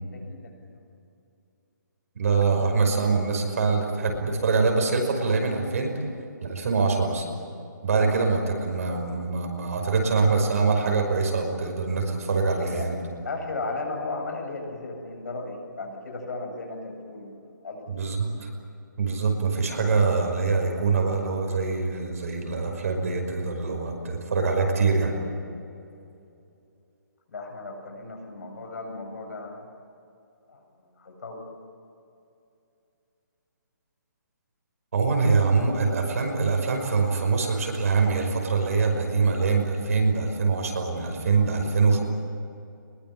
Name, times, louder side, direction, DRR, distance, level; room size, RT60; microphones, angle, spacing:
voice 1, 0.1-0.8 12.6-12.8 13.2-18.1 27.3-29.7 30.5-30.6 31.0-31.4, left 3 dB, 60° left, 3 dB, 7.4 m, -36 dB
voice 2, 2.2-5.9 6.4-7.3 7.8-13.0 17.9-18.5 19.0-25.1 34.9-42.0, right 4 dB, 50° right, 3 dB, 5.6 m, -24 dB
23.0 x 22.0 x 8.8 m, 2.6 s
hypercardioid pair, 170°, 11 cm